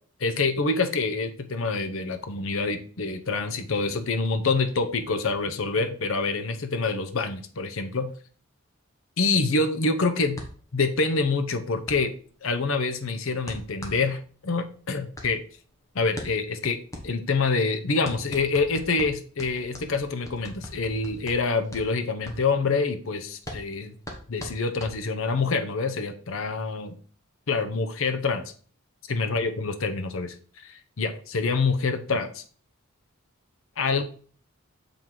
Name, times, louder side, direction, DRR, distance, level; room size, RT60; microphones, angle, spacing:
voice 1, 0.2-8.1 9.2-10.4 10.7-12.1 12.4-15.4 15.9-16.8 17.0-23.9 24.3-27.0 27.5-28.4 29.1-32.4 33.8-34.0, left 4 dB, 70° left, 8 dB, 0.7 m, -26 dB
sound 1, 10.4-25.4, left 1 dB, 15° left, 1.3 m, -42 dB
7.0 x 3.8 x 4.6 m, 0.43 s
head